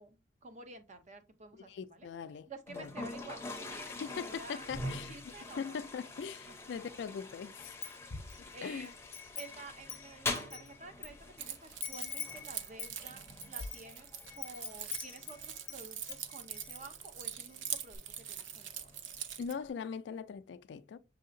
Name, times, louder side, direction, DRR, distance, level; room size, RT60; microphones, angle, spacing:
voice 1, 0.0-2.1 2.5-5.8 6.5-6.6 8.5-9.0 9.4-14.1 14.4-18.9, right 3 dB, 40° right, 0.6 m, -51 dB
voice 2, 1.7-2.9 4.0-5.1 5.6-7.7 8.6-8.9 19.4-21.0, left 6 dB, 70° left, 0.3 m, -41 dB
Toilet flush, 2.7-19.7, left 2 dB, 15° left, 0.6 m, -45 dB
Wind chime, 7.6-8.4 8.8-11.1 11.4-11.5 11.8-15.8 16.1-16.8 17.2-17.3 17.5-18.0, left 8 dB, 85° left, 0.7 m, -44 dB
Keys jangling, 11.4-19.5, right 9 dB, 85° right, 0.5 m, -43 dB
6.4 x 2.8 x 2.5 m
head